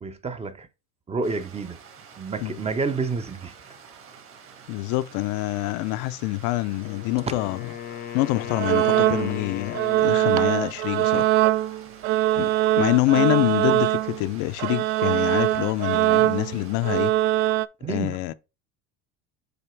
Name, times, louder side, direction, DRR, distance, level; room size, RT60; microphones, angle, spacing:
voice 1, 0.0-0.7 1.1-1.8 2.2-3.6 7.3-7.4 17.8-18.2, right 4 dB, 20° right, 0.7 m, -29 dB
Stream, 1.2-17.1, right 6 dB, 40° right, 2.0 m, -48 dB
voice 2, 4.7-7.6 7.9-11.6 12.4-12.5 12.8-17.1 17.9-18.3, left 17 dB, 65° left, 0.6 m, -26 dB
Wind instrument woodwind instrument, 6.7-10.6, left 11 dB, 30° left, 0.6 m, -37 dB
sound 1, 8.5-9.5 9.7-14.3 14.6-17.7, right 14 dB, 65° right, 0.5 m, -22 dB
7.8 x 3.0 x 4.5 m
supercardioid pair, 125°, 33 cm